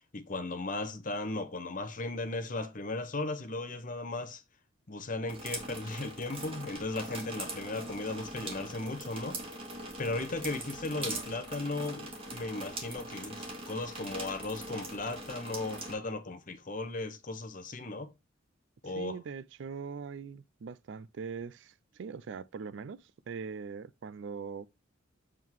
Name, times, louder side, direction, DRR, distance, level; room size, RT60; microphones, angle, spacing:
voice 1, 0.1-4.4 4.9-9.4 10.0-18.1 18.8-19.2, left 2 dB, 40° left, 1.0 m, -36 dB
sound 1, 5.3-15.9, right 2 dB, 30° right, 1.8 m, -41 dB
voice 2, 18.8-24.7, right 5 dB, 60° right, 0.4 m, -42 dB
7.5 x 3.7 x 4.6 m
head